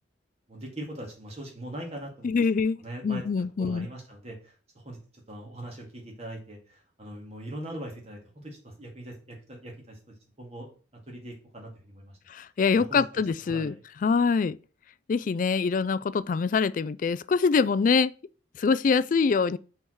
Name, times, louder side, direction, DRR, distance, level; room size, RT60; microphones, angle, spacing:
voice 1, 0.5-2.3 2.8-3.2 3.6-5.0 5.3-10.7 11.1-12.2 12.7-13.0 13.5-13.8, right 1 dB, 35° right, 2.2 m, -41 dB
voice 2, 2.2-3.9 12.3-13.8 14.0-14.6 15.1-18.1 18.6-19.6, left 5 dB, 40° left, 0.3 m, -24 dB
5.5 x 4.6 x 6.3 m
head